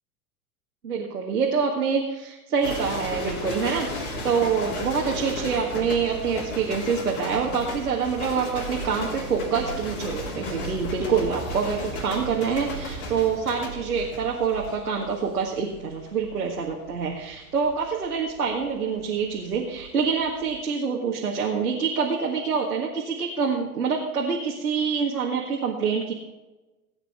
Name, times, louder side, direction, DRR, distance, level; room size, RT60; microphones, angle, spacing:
voice 1, 0.8-26.1, right 6 dB, 85° right, -1 dB, 1.7 m, -26 dB
sound 1, 2.6-19.9 20.1-20.5, left 1 dB, 70° left, 3.3 m, -35 dB
18.0 x 8.9 x 3.5 m, 1.1 s
figure-of-eight pair, 95°, 45 cm